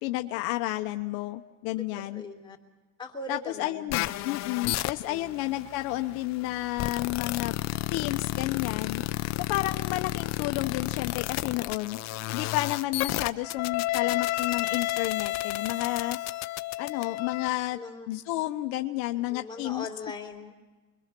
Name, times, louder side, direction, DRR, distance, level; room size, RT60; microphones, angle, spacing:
voice 1, 0.0-2.2 3.3-7.5 7.9-9.0 9.4-12.0 12.3-16.2 16.8-17.8 18.1-19.9, left 17 dB, 70° left, 6 dB, 1.1 m, -31 dB
voice 2, 1.9-2.6 3.0-3.8 5.0-5.4 17.7-18.1 19.3-20.5, left 3 dB, 15° left, -1 dB, 3.6 m, -40 dB
sound 1, 3.9-17.5, left 17 dB, 50° left, 0.8 m, -31 dB
29.5 x 22.5 x 6.0 m, 1.2 s
cardioid pair, 140°, 35 cm